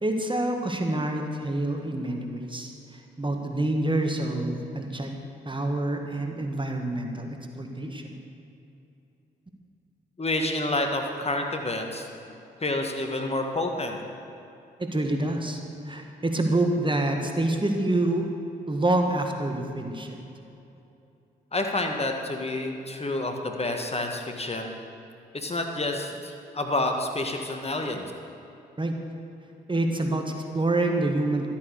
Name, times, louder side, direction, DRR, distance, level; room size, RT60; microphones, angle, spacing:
voice 1, 0.0-5.1 5.5-8.1 14.8-15.6 15.9-18.3 18.7-20.2 28.8-28.9 29.7-31.5, right 2 dB, 25° right, 3 dB, 1.8 m, -27 dB
voice 2, 10.2-12.1 12.6-14.0 21.5-24.7 25.3-28.1, left 2 dB, 30° left, 3 dB, 1.7 m, -29 dB
13.0 x 8.6 x 6.7 m, 2.8 s
hypercardioid pair, 40°, 21 cm